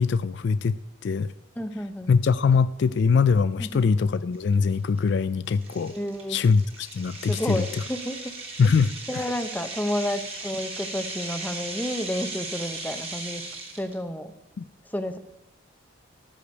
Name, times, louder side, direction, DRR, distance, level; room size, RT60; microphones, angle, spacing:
voice 1, 0.0-1.3 2.1-5.9 6.3-7.8 8.6-9.3 14.6-14.7, left 5 dB, 55° left, 14 dB, 0.3 m, -23 dB
voice 2, 1.6-2.1 3.6-3.9 5.9-6.4 7.3-8.4 9.1-13.4 13.7-14.3 14.9-15.2, equal, 10° left, 9 dB, 0.6 m, -31 dB
Rolling pebbles enhanced, 3.7-3.8 4.3-4.5 5.0-5.1 5.6-13.9, right 2 dB, 30° right, 1.5 m, -37 dB
13.5 x 5.0 x 8.1 m, 0.90 s
head